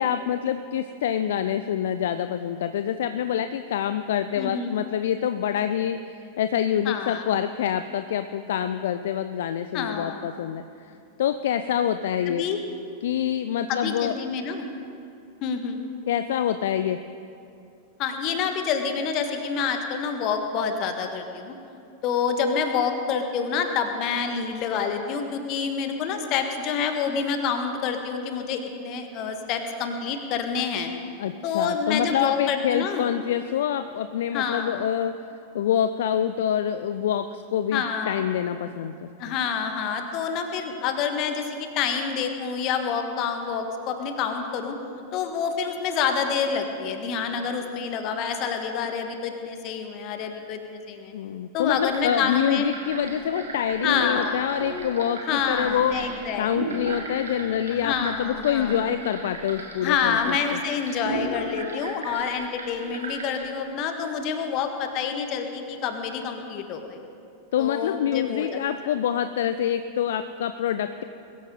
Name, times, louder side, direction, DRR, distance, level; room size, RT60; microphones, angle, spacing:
voice 1, 0.0-10.6 11.2-12.4 13.0-14.1 16.1-17.0 31.2-35.1 35.5-39.3 51.1-56.0 56.4-60.6 67.5-71.0, left 9 dB, 60° left, 11 dB, 0.4 m, -26 dB
voice 2, 4.4-4.8 6.8-7.2 9.7-10.2 12.3-12.6 13.7-14.6 15.4-15.8 18.0-21.5 22.0-30.9 31.4-33.1 34.3-34.8 37.7-38.2 39.2-44.8 45.1-51.1 51.5-52.7 53.8-54.4 55.2-56.8 57.7-58.7 59.8-67.0 67.6-68.9, left 6 dB, 40° left, 6 dB, 1.6 m, -27 dB
sound 1, 51.7-63.5, right 2 dB, 70° right, 2.1 m, -36 dB
21.5 x 13.5 x 3.9 m, 2.6 s
figure-of-eight pair, 90°, 0 cm